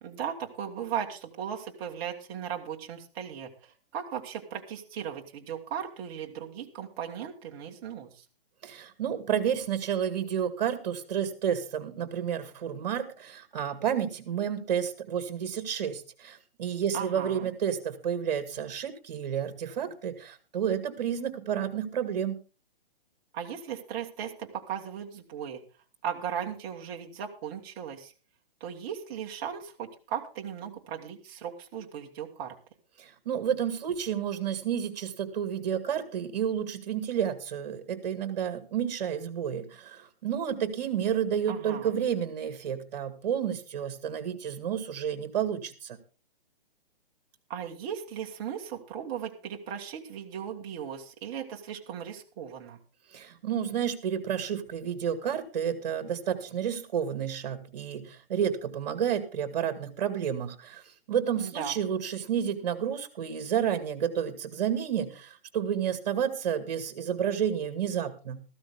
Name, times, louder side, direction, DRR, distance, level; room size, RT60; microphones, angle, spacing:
voice 1, 0.0-8.2 16.9-17.5 23.3-25.6 26.0-28.1 28.6-32.5 41.5-42.0 47.5-52.8 61.4-61.7, right 8 dB, 20° right, 1 dB, 1.6 m, -37 dB
voice 2, 8.6-22.4 33.0-46.0 53.1-60.8 61.1-68.4, right 8 dB, 45° right, 10 dB, 2.2 m, -30 dB
14.5 x 12.5 x 3.6 m, 0.35 s
hypercardioid pair, 165°, 30 cm